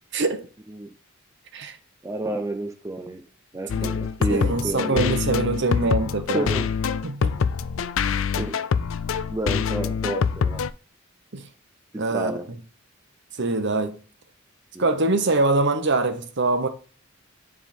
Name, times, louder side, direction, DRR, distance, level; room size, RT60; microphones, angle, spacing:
voice 1, 0.1-0.5 1.5-1.8 3.7-3.9 4.3-6.5 7.0-7.4 11.3-11.5 12.0-12.3 13.4-14.0 14.8-16.7, right 3 dB, 60° right, 1.0 m, -23 dB
voice 2, 2.0-3.2 3.5-5.2 6.3-6.7 8.4-8.6 9.3-10.6 11.9-12.5 14.7-14.9, right 1 dB, 15° right, 0.6 m, -30 dB
sound 1, 3.7-10.7, left 6 dB, 65° left, 0.4 m, -25 dB
10.0 x 3.7 x 4.3 m
head